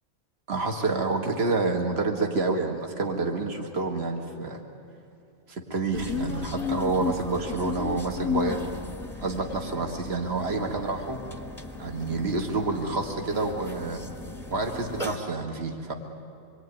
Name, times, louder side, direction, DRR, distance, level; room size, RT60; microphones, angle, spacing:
voice 1, 0.5-4.6 5.5-8.7 9.2-11.2 11.8-14.0 14.5-15.9, right 3 dB, 45° right, 3 dB, 2.3 m, -28 dB
sound 1, 5.9-15.2, left 5 dB, ahead, 1.7 m, -35 dB
26.5 x 22.5 x 9.4 m, 2.7 s
omnidirectional pair, 1.4 m